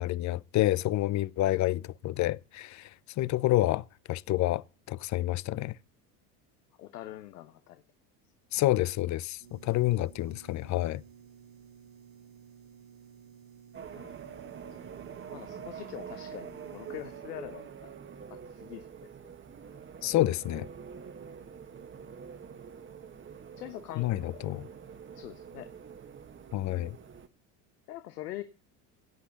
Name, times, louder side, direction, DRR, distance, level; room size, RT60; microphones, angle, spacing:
voice 1, 0.0-5.8 8.5-11.0 20.0-20.7 24.0-24.7 26.5-27.0, left 15 dB, 40° left, 0.6 m, -28 dB
voice 2, 6.8-7.8 13.9-14.1 15.3-17.9 18.3-19.1 23.6-24.4 25.1-25.7 27.9-28.4, left 14 dB, 90° left, 1.1 m, -44 dB
sound 1, 9.4-17.2, right 8 dB, 80° right, 6.1 m, -54 dB
sound 2, 13.7-27.3, right 7 dB, 25° right, 1.3 m, -46 dB
16.0 x 8.2 x 5.3 m
supercardioid pair, 95°, 46 cm